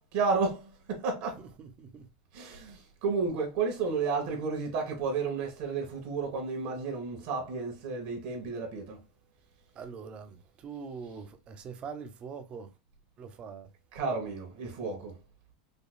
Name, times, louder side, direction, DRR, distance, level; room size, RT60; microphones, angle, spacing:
voice 1, 0.1-0.6 1.0-1.3 2.4-2.6 3.0-9.0 13.9-15.1, right 4 dB, 65° right, 1.6 m, -31 dB
voice 2, 1.4-2.1 9.7-12.7 13.2-13.7, right 6 dB, 35° right, 0.8 m, -43 dB
5.2 x 2.3 x 2.2 m
supercardioid pair, 125°, 3 cm